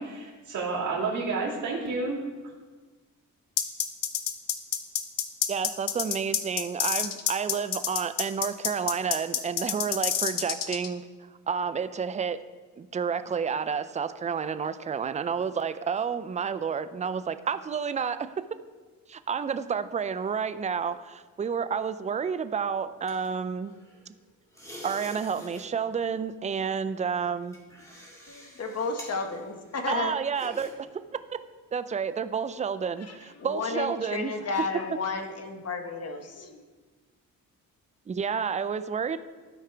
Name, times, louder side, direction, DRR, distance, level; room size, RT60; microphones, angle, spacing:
voice 1, 0.0-2.2, right 3 dB, 55° right, -6 dB, 2.2 m, -30 dB
sound 1, 3.6-10.9, left 9 dB, 70° left, 0.8 m, -28 dB
voice 2, 5.5-11.0 11.5-12.4 12.8-18.3 19.1-23.8 24.8-27.6 29.9-30.9 31.7-34.3 38.1-39.2, right 6 dB, 20° right, 12 dB, 0.3 m, -30 dB
sound 2, 22.6-24.1 24.5-25.7 25.9-26.2 26.9-30.7 31.0-31.2, equal, 10° left, 2.0 m, -47 dB
voice 3, 28.3-30.1 33.1-36.6, left 4 dB, 45° left, 5 dB, 1.1 m, -32 dB
12.5 x 4.9 x 4.5 m, 1.4 s
cardioid pair, 100°, 34 cm